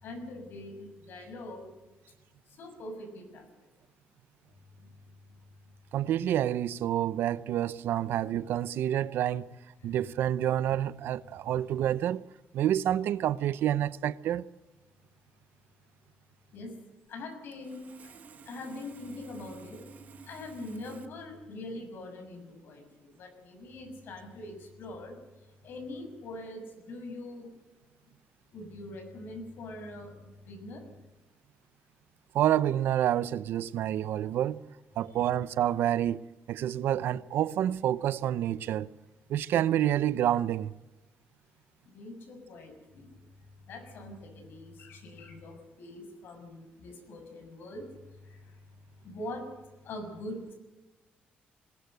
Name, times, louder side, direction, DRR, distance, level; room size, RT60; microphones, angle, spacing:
voice 1, 0.0-1.7 2.6-3.4 16.5-16.7 17.1-17.8 18.5-19.8 20.3-25.1 25.6-27.5 28.5-30.1 30.4-30.8 41.9-43.1 43.7-47.9 49.0-49.4 49.8-50.6, left 2 dB, 70° left, 6.7 m, -43 dB
voice 2, 5.9-9.5 9.8-12.2 12.5-14.4 32.3-34.6 35.0-36.2 36.5-38.9 39.3-40.7, right 11 dB, 80° right, 0.7 m, -28 dB
Sawing, 17.1-17.2 17.5-21.1, right 6 dB, 45° right, 1.3 m, -51 dB
21.0 x 19.5 x 7.9 m
cardioid pair, 130°, 4 cm